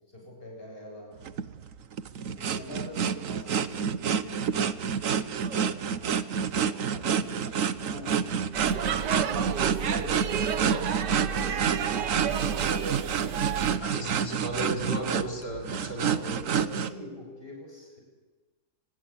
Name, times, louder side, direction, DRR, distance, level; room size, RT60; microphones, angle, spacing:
voice 1, 0.1-1.2 2.4-4.6 5.3-8.5 8.9-14.2 16.1-18.0, left 1 dB, 35° left, 0 dB, 7.7 m, -45 dB
sound 1, 1.2-16.9, right 7 dB, 55° right, 1.2 m, -28 dB
Speech / Shout / Subway metro underground, 8.5-13.8, right 7 dB, 85° right, 1.8 m, -31 dB
voice 2, 13.8-16.2, right 1 dB, 75° left, -1 dB, 5.9 m, -34 dB
27.5 x 19.5 x 8.8 m, 1.3 s
omnidirectional pair, 1.8 m